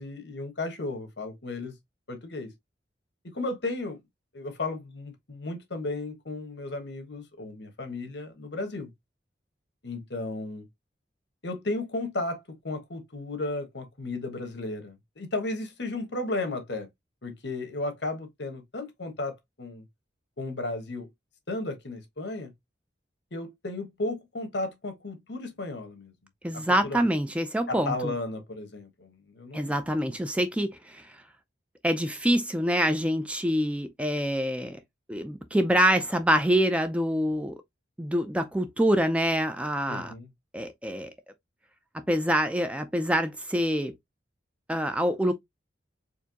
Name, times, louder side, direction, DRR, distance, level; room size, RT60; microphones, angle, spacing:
voice 1, 0.0-1.7 2.1-2.5 3.2-4.0 4.3-8.9 9.8-10.6 11.4-16.9 17.2-19.8 20.4-21.1 21.5-22.5 23.3-26.1 26.5-27.0 27.7-29.8 39.9-40.3, left 2 dB, 70° left, 1.3 m, -34 dB
voice 2, 26.4-28.1 29.5-31.1 31.8-34.8 35.1-37.5 38.0-40.1 40.5-41.1 42.1-43.9 44.7-45.3, equal, 5° right, 0.4 m, -26 dB
4.5 x 2.7 x 2.8 m
head